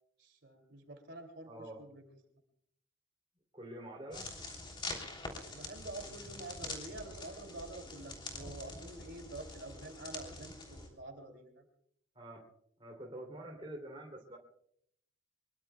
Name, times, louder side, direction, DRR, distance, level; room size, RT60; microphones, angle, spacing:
voice 1, 0.2-2.0 5.4-11.7, right 2 dB, 60° right, 5 dB, 2.9 m, -48 dB
voice 2, 1.5-1.9 3.5-4.3 12.1-12.5 12.8-14.4, right 1 dB, 25° right, 1 dB, 3.0 m, -46 dB
sound 1, 4.1-10.9, left 2 dB, 25° left, 3.3 m, -45 dB
24.0 x 22.5 x 2.3 m, 0.70 s
head